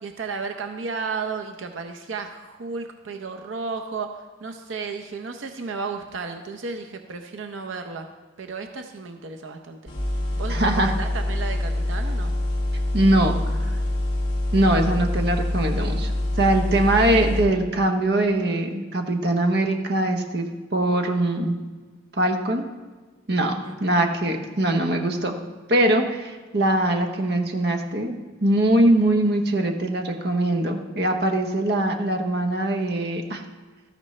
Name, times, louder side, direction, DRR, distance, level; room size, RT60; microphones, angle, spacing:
voice 1, 0.0-8.1 8.4-9.9 10.3-12.3 23.6-23.7, right 4 dB, 80° right, 5 dB, 0.7 m, -33 dB
sound 1, 9.9-17.4, left 1 dB, 25° left, 3.1 m, -25 dB
voice 2, 10.5-10.9 12.9-13.7 14.5-21.6 22.1-22.6 23.3-23.5 23.8-25.3 25.7-33.4, right 1 dB, 55° right, 4 dB, 0.9 m, -22 dB
13.0 x 10.5 x 3.2 m, 1.3 s
head